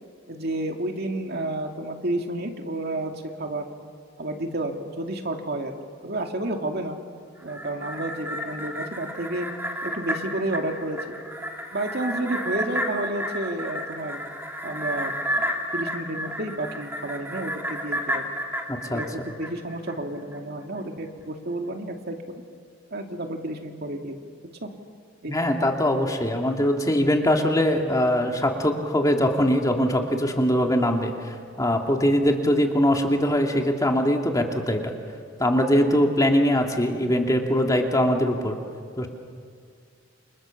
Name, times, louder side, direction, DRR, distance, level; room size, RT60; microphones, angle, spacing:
voice 1, 0.3-3.1 3.4-3.7 4.2-5.7 6.0-7.0 7.4-9.5 9.8-11.2 11.7-14.2 14.6-18.2 18.9-22.4 22.9-24.1 24.6-24.7 25.2-25.3, right 1 dB, 55° right, 3 dB, 2.4 m, -31 dB
sound 1, 7.4-19.9 20.3-20.4, equal, 10° right, 2.9 m, -32 dB
voice 2, 18.7-19.0 25.3-35.0 35.4-38.6 39.0-39.1, equal, 20° left, 2 dB, 2.4 m, -22 dB
29.0 x 27.0 x 7.2 m, 2.2 s
head